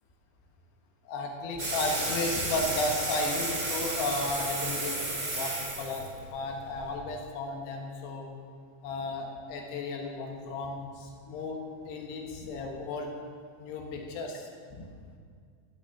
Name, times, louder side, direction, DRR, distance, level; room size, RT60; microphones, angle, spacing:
voice 1, 1.1-5.0 5.2-8.3 8.8-13.1 13.6-14.8, left 2 dB, 75° left, 1 dB, 3.4 m, -34 dB
sound 1, 1.6-6.9, right 2 dB, 35° right, 1.7 m, -33 dB
15.5 x 6.1 x 7.0 m, 2.1 s
omnidirectional pair, 5.0 m